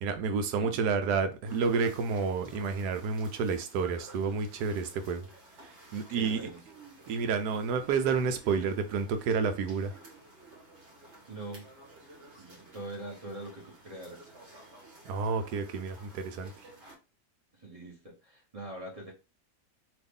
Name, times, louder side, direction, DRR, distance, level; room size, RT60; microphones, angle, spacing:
voice 1, 0.0-5.3 5.6-6.4 7.1-9.9 15.0-16.7, right 5 dB, 75° right, 1.1 m, -30 dB
voice 2, 0.6-1.1 6.1-6.6 11.3-11.6 12.4-14.3 17.5-19.1, right 1 dB, 30° right, 0.8 m, -43 dB
sound 1, 1.5-17.0, right 2 dB, 45° right, 1.4 m, -53 dB
3.1 x 2.4 x 3.5 m
omnidirectional pair, 1.8 m